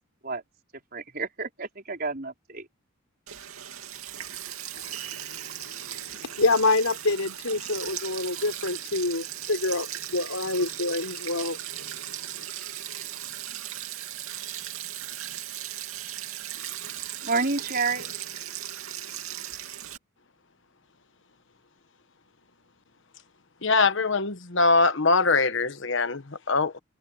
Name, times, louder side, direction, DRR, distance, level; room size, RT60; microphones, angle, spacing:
voice 1, 0.9-2.7 17.2-18.1, right 4 dB, 45° right, 4.8 m, -29 dB
Sink (filling or washing), 3.3-20.0, right 11 dB, 85° right, 2.5 m, -37 dB
voice 2, 4.8-12.1, left 2 dB, 85° left, 4.3 m, -28 dB
voice 3, 23.6-26.8, left 3 dB, 60° left, 1.2 m, -23 dB
head